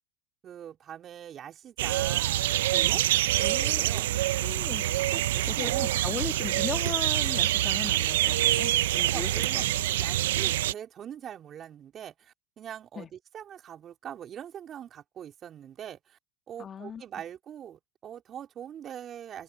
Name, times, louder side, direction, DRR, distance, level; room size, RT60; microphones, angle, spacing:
voice 1, 0.4-3.1 3.4-4.1 5.1-5.9 9.1-9.6 10.0-16.2 16.5-19.4, right 9 dB, 35° right, 4.1 m, -43 dB
sound 1, 1.8-10.7, right 14 dB, 75° right, 0.6 m, -26 dB
voice 2, 3.1-4.0 4.4-4.9 5.3-9.7 13.0-13.1 16.6-17.0, left 7 dB, 30° left, 1.9 m, -38 dB
hypercardioid pair, 105°, 0 cm